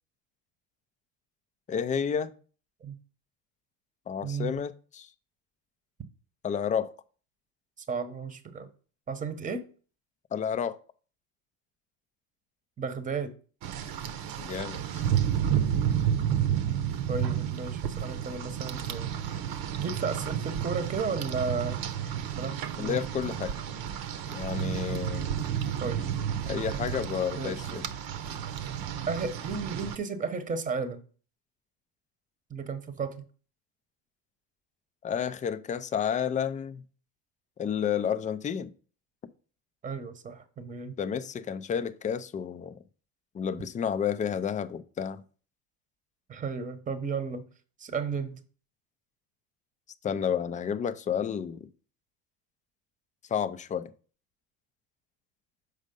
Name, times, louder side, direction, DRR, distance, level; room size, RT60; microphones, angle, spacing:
voice 1, 1.7-2.3 4.1-5.1 6.4-6.9 10.3-10.8 14.4-15.1 22.8-23.5 24.3-25.3 26.5-27.9 35.0-36.8 37.6-38.7 41.0-42.8 43.3-45.2 50.0-51.7 53.3-53.9, left 8 dB, 20° left, 0.4 m, -31 dB
voice 2, 4.2-4.5 7.9-8.7 9.1-9.7 12.8-13.3 17.1-19.1 19.8-21.9 22.4-23.0 25.8-26.1 27.4-27.8 29.1-31.0 32.5-33.2 39.8-41.0 46.3-47.5 47.8-48.4, right 5 dB, 20° right, 1.0 m, -34 dB
Rain, 13.6-30.0, right 9 dB, 55° right, 0.9 m, -31 dB
6.5 x 5.1 x 5.2 m
supercardioid pair, 110°, 42 cm